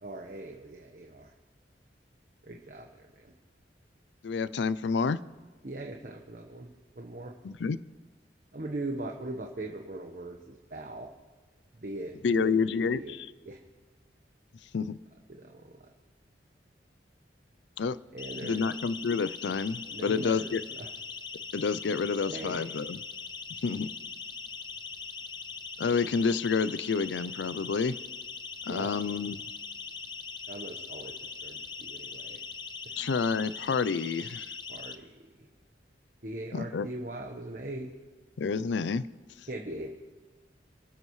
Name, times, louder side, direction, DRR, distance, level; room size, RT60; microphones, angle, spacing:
voice 1, 0.0-1.3 2.4-3.3 5.6-7.3 8.5-11.1 11.7-13.2 13.4-13.6 15.3-15.9 18.1-18.7 19.9-20.9 22.3-22.6 28.7-28.9 30.5-32.4 32.8-32.9 34.7-35.5 36.2-37.9 39.5-39.9, right 2 dB, 50° right, 1 dB, 1.2 m, -40 dB
voice 2, 4.2-5.2 7.4-7.8 12.2-13.3 14.7-15.0 17.8-18.0 18.4-20.6 21.5-23.0 23.6-23.9 25.8-27.9 28.7-29.4 33.0-34.5 36.5-36.9 38.4-39.0, left 5 dB, 80° left, 16 dB, 0.4 m, -29 dB
Siren, 18.2-34.9, left 5 dB, 25° left, 0.6 m, -41 dB
28.0 x 12.5 x 3.2 m, 1.3 s
head